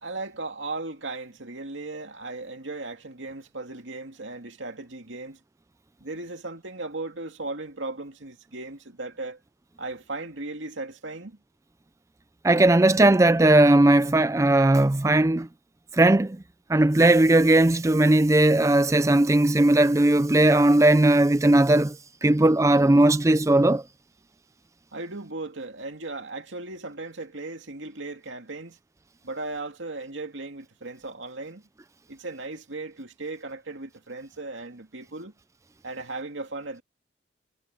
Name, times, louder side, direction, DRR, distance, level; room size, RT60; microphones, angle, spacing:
voice 1, 0.0-5.4 6.0-9.4 9.8-11.4 24.9-28.8 29.2-31.7 32.1-35.3 35.8-36.8, right 2 dB, 90° right, 2.4 m, -36 dB
voice 2, 12.4-15.5 15.9-16.4 16.7-22.0 22.2-23.8, right 1 dB, 15° right, 0.4 m, -18 dB
head